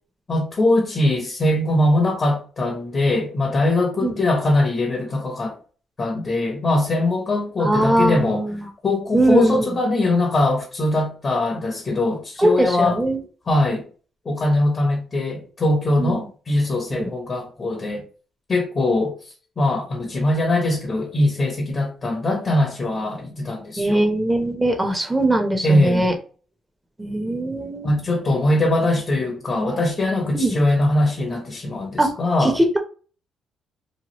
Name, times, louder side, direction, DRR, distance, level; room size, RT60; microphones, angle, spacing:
voice 1, 0.3-5.6 6.0-8.4 8.8-13.0 13.5-13.8 14.2-18.0 18.5-19.2 19.6-24.1 25.6-26.2 27.8-32.6, left 1 dB, 40° left, 0.9 m, -21 dB
voice 2, 7.6-8.6 9.1-9.7 12.4-13.2 16.0-16.2 17.0-17.1 23.8-26.1 27.0-27.9 29.6-29.8 30.3-30.6 32.0-32.1 32.4-32.8, right 1 dB, 15° right, 0.9 m, -20 dB
3.0 x 2.3 x 3.0 m
cardioid pair, 90°, 0 cm